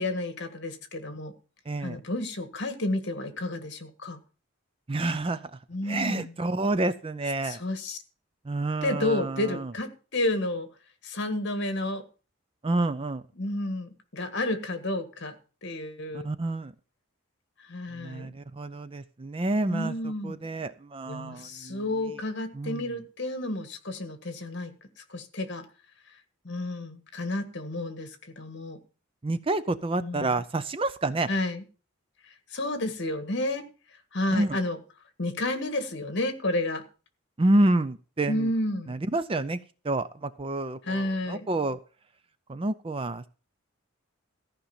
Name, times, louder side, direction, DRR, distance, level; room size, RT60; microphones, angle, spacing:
voice 1, 0.0-1.3 1.8-4.2 5.7-6.3 7.4-8.0 8.8-10.7 11.0-12.0 13.3-15.3 15.6-16.3 17.6-18.3 19.7-20.4 21.1-24.7 25.0-25.6 26.4-28.8 30.0-30.4 31.3-31.6 32.2-33.7 34.1-34.8 35.2-36.8 38.3-39.0 40.8-41.5, left 1 dB, 55° left, 9 dB, 1.7 m, -31 dB
voice 2, 1.7-2.0 4.9-5.6 5.9-7.6 8.5-9.7 12.6-13.2 16.1-16.7 17.9-19.9 20.2-21.8 22.6-22.8 29.2-31.3 34.3-34.6 37.4-38.5 38.9-39.6 39.8-41.8 42.5-43.2, right 2 dB, 25° right, 14 dB, 0.5 m, -28 dB
14.5 x 5.2 x 7.1 m, 0.36 s
head